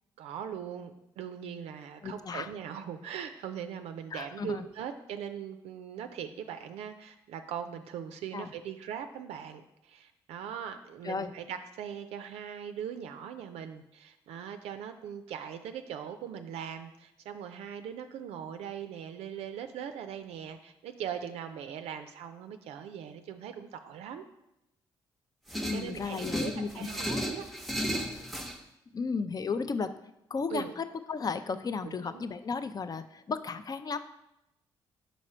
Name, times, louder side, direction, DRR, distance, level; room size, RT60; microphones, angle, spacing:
voice 1, 0.2-24.3 25.7-27.5 30.5-30.7 31.8-32.2, right 8 dB, 80° right, 8 dB, 0.4 m, -40 dB
voice 2, 2.0-2.5 4.1-4.6 8.3-8.5 11.0-11.3 25.6-27.3 28.9-29.9 30.3-34.0, left 5 dB, 40° left, 11 dB, 0.5 m, -34 dB
sound 1, 25.5-28.6, equal, ahead, 0.7 m, -34 dB
5.2 x 4.8 x 4.3 m, 0.87 s
supercardioid pair, 55°, 11 cm